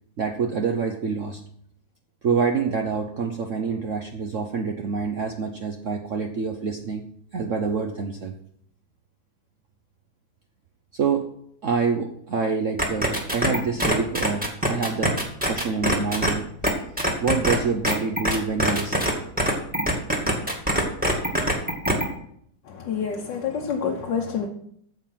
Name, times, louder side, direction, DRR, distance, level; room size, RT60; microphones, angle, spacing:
voice 1, 0.2-1.4 2.2-7.0 7.3-8.3 10.9-11.2 11.6-15.1 15.5-16.4 17.2-19.1, right 5 dB, 55° right, 4 dB, 1.0 m, -26 dB
sound 1, 12.8-16.3 16.6-16.7 17.0-17.6 17.8-19.1 19.4-22.0, equal, 5° right, 1.8 m, -22 dB
voice 2, 22.9-24.5, left 6 dB, 75° left, 1 dB, 1.7 m, -27 dB
9.4 x 7.2 x 5.8 m, 0.66 s
omnidirectional pair, 2.0 m